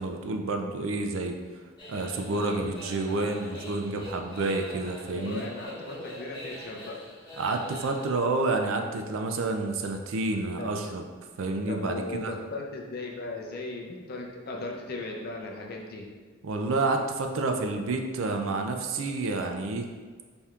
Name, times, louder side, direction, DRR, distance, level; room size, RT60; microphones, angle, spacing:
voice 1, 0.0-1.4 1.9-5.4 7.4-11.0 11.4-12.4 16.4-19.9, right 3 dB, 80° right, 4 dB, 0.4 m, -29 dB
sound 1, 1.8-8.1, left 1 dB, 20° left, 0.9 m, -44 dB
voice 2, 5.1-7.1 10.6-10.7 11.7-16.1, left 2 dB, 50° left, 0 dB, 0.6 m, -37 dB
4.2 x 3.4 x 2.4 m, 1.5 s
head